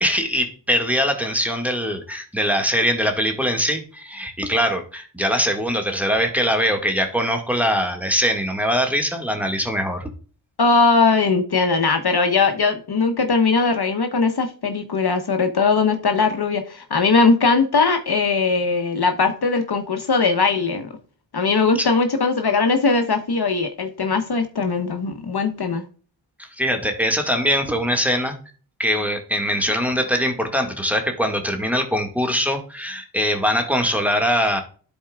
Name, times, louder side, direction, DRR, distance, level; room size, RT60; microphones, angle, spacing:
voice 1, 0.0-10.1 21.8-21.9 26.4-28.4 28.8-34.6, equal, 5° right, 1.8 m, -22 dB
voice 2, 10.6-20.9 21.3-25.8, left 4 dB, 50° left, 1.2 m, -20 dB
11.5 x 4.5 x 2.3 m
cardioid pair, 45°, 48 cm